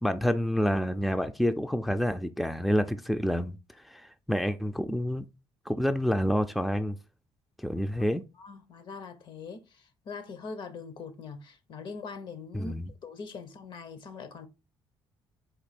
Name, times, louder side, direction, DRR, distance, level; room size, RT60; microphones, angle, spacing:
voice 1, 0.0-3.5 3.9-5.3 5.7-7.0 7.6-8.2 12.5-12.9, equal, ahead, 0.3 m, -28 dB
voice 2, 8.4-14.5, left 4 dB, 60° left, 0.8 m, -42 dB
4.3 x 2.7 x 4.1 m
cardioid pair, 90°, 9 cm